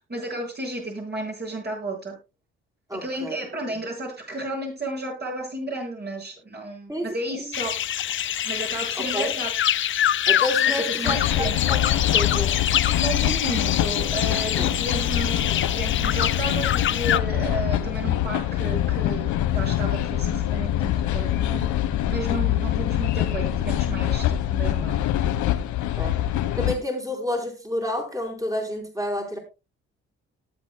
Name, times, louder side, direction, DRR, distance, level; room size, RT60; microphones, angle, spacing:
voice 1, 0.1-2.2 2.9-7.7 8.4-9.5 11.0-11.6 13.0-21.7 22.1-25.0, right 2 dB, 35° right, 7.2 m, -32 dB
voice 2, 2.9-3.4 6.9-7.1 7.4-7.5 9.0-9.3 10.3-12.7 14.6-14.7 26.0-26.2 26.5-29.4, left 1 dB, 10° right, 4.6 m, -30 dB
sound 1, 7.5-17.2, left 11 dB, 40° left, 0.5 m, -25 dB
sound 2, 11.1-26.7, left 12 dB, 80° left, 1.4 m, -24 dB
18.5 x 8.3 x 2.3 m
supercardioid pair, 65°, 30 cm